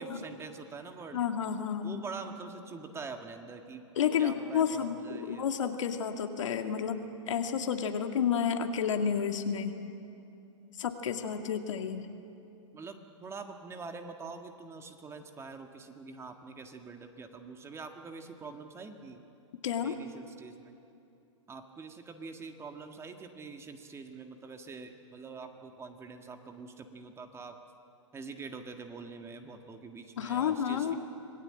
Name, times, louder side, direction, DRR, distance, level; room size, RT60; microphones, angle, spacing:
voice 1, 0.0-1.2 1.8-3.8 4.2-5.5 12.7-19.2 19.8-20.8 21.5-27.6 28.1-30.9, right 4 dB, 15° right, 6 dB, 1.7 m, -45 dB
voice 2, 1.1-2.0 4.0-9.7 10.8-12.1 19.6-20.0 30.2-31.0, left 7 dB, 70° left, 6 dB, 2.1 m, -31 dB
26.0 x 18.5 x 8.9 m, 2.8 s
hypercardioid pair, 125°, 16 cm